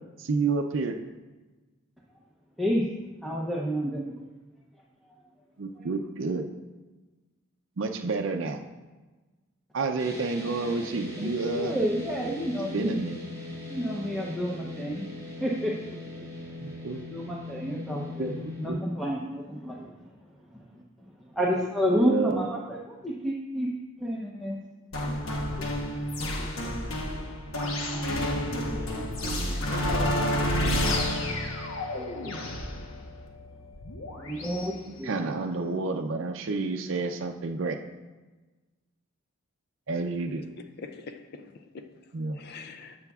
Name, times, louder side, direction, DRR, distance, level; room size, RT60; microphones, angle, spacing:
voice 1, 0.2-1.0 5.6-6.5 7.8-8.6 9.7-11.8 12.7-13.2 16.6-17.0 18.2-18.8 21.9-22.5 29.2-29.3 29.7-29.8 34.9-37.8 39.9-40.4 42.1-42.4, right 3 dB, 65° right, 4 dB, 0.5 m, -30 dB
voice 2, 3.2-4.2 5.8-5.9 11.2-13.0 13.7-15.1 15.4-15.8 17.1-19.9 20.5-23.7 24.0-24.6 25.1-25.2 25.6-25.7 26.6-26.7 27.6-28.1 28.9-30.1 30.5-31.1 31.9-32.5 34.2-35.1, equal, ahead, -3 dB, 0.6 m, -31 dB
sound 1, 10.0-18.7, left 2 dB, 15° left, 1.9 m, -40 dB
sound 2, 24.9-34.7, left 1 dB, 85° left, 1.0 m, -30 dB
voice 3, 40.8-43.0, left 4 dB, 50° left, 8 dB, 0.4 m, -44 dB
12.5 x 7.0 x 2.4 m, 1.2 s
head